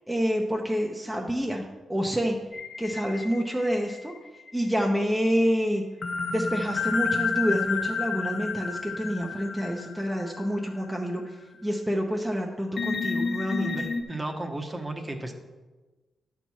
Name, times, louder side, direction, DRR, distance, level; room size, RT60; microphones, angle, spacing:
voice 1, 0.1-2.4 2.8-4.1 4.5-5.8 6.3-13.9, equal, 5° right, 0 dB, 0.9 m, -28 dB
sound 1, 2.5-4.5 6.0-10.9 11.3-11.4 12.8-14.0, left 5 dB, 50° left, 1.1 m, -31 dB
voice 2, 14.1-15.3, right 2 dB, 20° right, 4 dB, 1.1 m, -34 dB
10.5 x 4.7 x 5.6 m, 1.2 s
cardioid pair, 95°, 0 cm